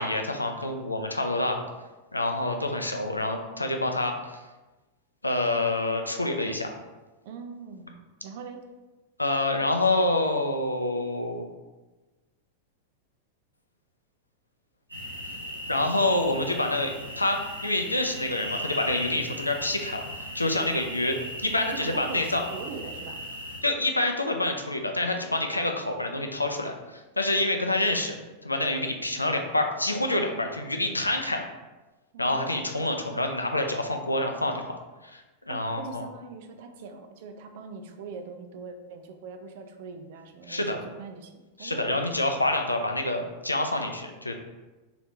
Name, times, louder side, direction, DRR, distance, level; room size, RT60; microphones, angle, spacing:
voice 1, 0.0-1.6 2.1-4.2 5.2-6.8 9.2-11.4 15.7-22.4 23.6-28.2 28.4-31.5 32.2-34.7 35.0-36.1 40.5-40.8 41.6-44.3, left 2 dB, 85° left, 4 dB, 0.4 m, -27 dB
voice 2, 7.2-8.0 8.2-8.6 21.6-23.2 32.1-32.9 35.5-42.0, right 5 dB, 50° right, 5 dB, 0.4 m, -42 dB
sound 1, 14.9-23.6, equal, 85° right, 0.8 m, -37 dB
3.2 x 3.0 x 3.8 m, 1.2 s
figure-of-eight pair, 90°, 0 cm